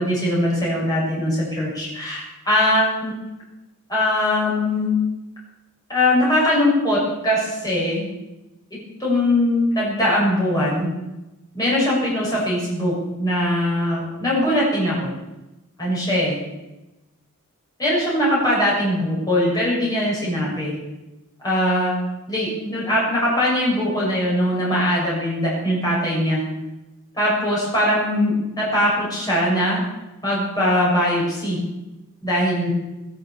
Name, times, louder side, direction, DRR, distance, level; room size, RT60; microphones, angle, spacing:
voice 1, 0.0-3.1 3.9-5.0 5.9-8.0 9.0-10.9 11.5-15.1 15.8-16.4 17.8-20.7 21.4-22.0 22.3-26.4 27.1-29.9 30.2-31.7 32.2-32.7, left 1 dB, 20° left, -6 dB, 6.4 m, -21 dB
21.5 x 8.2 x 7.2 m, 1.0 s
head